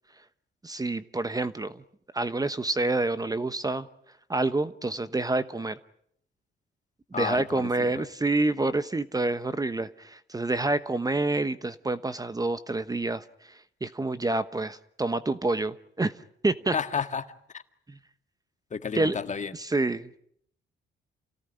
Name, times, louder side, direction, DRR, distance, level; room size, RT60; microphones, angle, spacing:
voice 1, 0.6-1.8 2.1-3.9 4.3-5.8 7.1-16.1 16.4-16.7 17.9-18.0 18.9-19.1 19.5-20.2, right 2 dB, 20° right, 13 dB, 1.1 m, -28 dB
voice 2, 7.1-8.1 16.7-17.6 18.7-19.5, left 6 dB, 35° left, 9 dB, 1.8 m, -32 dB
28.5 x 17.5 x 10.0 m, 0.70 s
cardioid pair, 90°, 20 cm